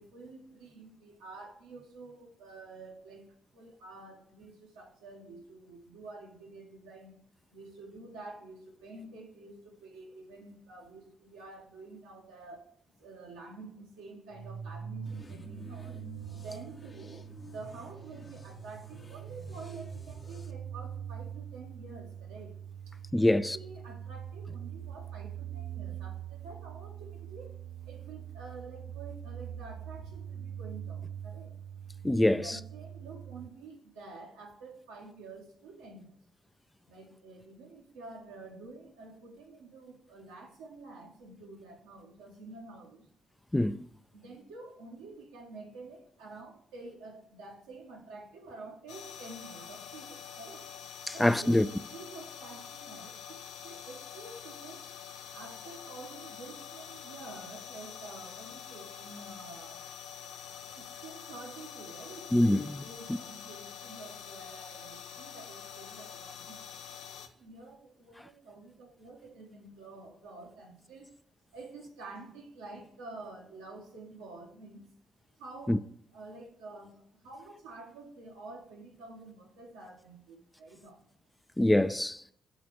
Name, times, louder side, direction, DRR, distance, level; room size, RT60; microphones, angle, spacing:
voice 1, 0.0-7.2 7.5-31.6 32.3-36.2 36.9-43.1 44.1-50.7 51.1-55.0 55.3-59.9 60.7-62.4 62.8-71.2 71.5-74.9 75.4-81.2, right 3 dB, 90° right, 1.2 m, -49 dB
sound 1, 14.3-33.5, right 9 dB, 75° right, 0.4 m, -43 dB
sound 2, 15.1-20.5, left 3 dB, 40° left, 0.8 m, -52 dB
voice 2, 23.1-23.6 32.0-32.6 43.5-43.8 51.1-51.7 62.3-62.8 75.7-75.8 81.6-82.2, left 1 dB, 15° left, 0.3 m, -24 dB
sound 3, 48.9-67.3, left 7 dB, 85° left, 0.5 m, -46 dB
6.2 x 4.1 x 4.6 m
hypercardioid pair, 45°, 0 cm